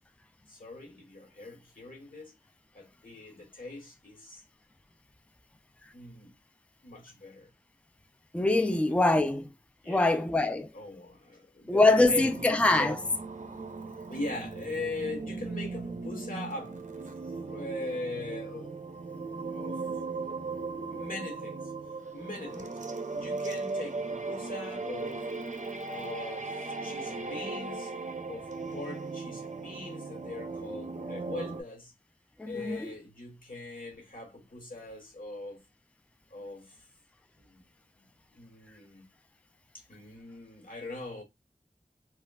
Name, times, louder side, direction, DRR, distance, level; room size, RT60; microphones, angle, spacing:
voice 1, 0.5-2.3 2.7-4.4 5.9-6.3 6.8-7.5 8.7-9.0 9.8-10.2 10.7-13.0 14.1-17.1 17.5-18.8 19.5-19.8 20.9-21.6 22.1-25.2 25.9-27.9 28.3-31.9 32.4-35.6 36.3-36.7 37.4-37.6 37.9-38.1 38.3-39.1 39.9-41.2, left 2 dB, 85° left, 1.2 m, -41 dB
voice 2, 8.3-9.5 9.9-10.7 11.7-13.0 32.4-32.9, left 2 dB, 10° left, 0.4 m, -24 dB
sound 1, 12.0-31.6, right 3 dB, 60° right, 0.5 m, -38 dB
3.2 x 2.4 x 2.3 m
wide cardioid pair, 40°, 14 cm